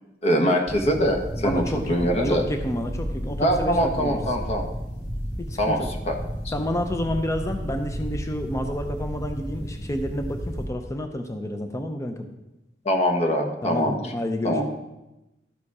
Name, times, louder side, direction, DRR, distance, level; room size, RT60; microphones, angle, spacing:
voice 1, 0.2-2.4 3.4-4.6 5.6-6.2 6.4-6.5 12.8-14.0 14.4-14.6, equal, 40° left, 3 dB, 1.2 m, -23 dB
sound 1, 0.7-10.7, equal, 90° left, 2.0 m, -33 dB
voice 2, 1.3-4.2 5.5-5.9 6.5-12.3 13.6-14.6, left 1 dB, 15° left, 5 dB, 0.6 m, -30 dB
13.0 x 5.0 x 4.8 m, 0.96 s
head